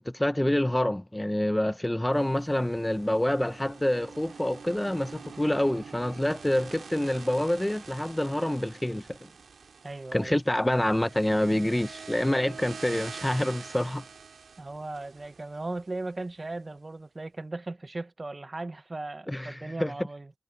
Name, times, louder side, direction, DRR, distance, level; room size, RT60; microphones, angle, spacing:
voice 1, 0.0-9.2 10.1-14.0 19.3-19.9, left 1 dB, 10° left, 0.5 m, -27 dB
sound 1, 2.1-16.3, right 5 dB, 85° right, 2.0 m, -46 dB
voice 2, 9.8-10.4 14.6-20.3, right 2 dB, 30° right, 0.8 m, -37 dB
wide cardioid pair, 85°, 0 cm